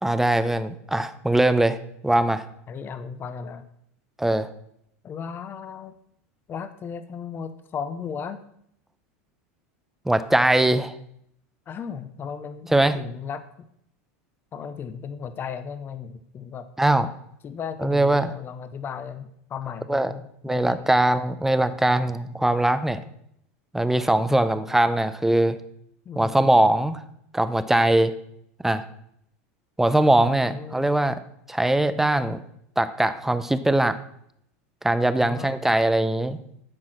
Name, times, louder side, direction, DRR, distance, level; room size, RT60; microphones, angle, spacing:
voice 1, 0.0-1.8 2.0-2.4 4.2-4.5 10.1-10.9 12.7-13.0 16.8-17.1 17.8-18.3 19.9-20.1 20.4-23.0 23.7-25.6 26.2-27.0 27.3-28.1 28.6-28.9 29.8-31.2 31.5-32.4 32.8-34.0 34.8-36.4, right 1 dB, 5° right, 12 dB, 0.6 m, -21 dB
voice 2, 2.7-3.7 5.0-6.0 6.5-8.4 11.7-13.4 14.5-16.7 17.4-20.9 24.3-24.5 26.1-26.4 30.2-30.9 35.2-35.6, left 6 dB, 30° left, 11 dB, 0.7 m, -35 dB
12.0 x 4.8 x 5.9 m, 0.72 s
supercardioid pair, 125°, 8 cm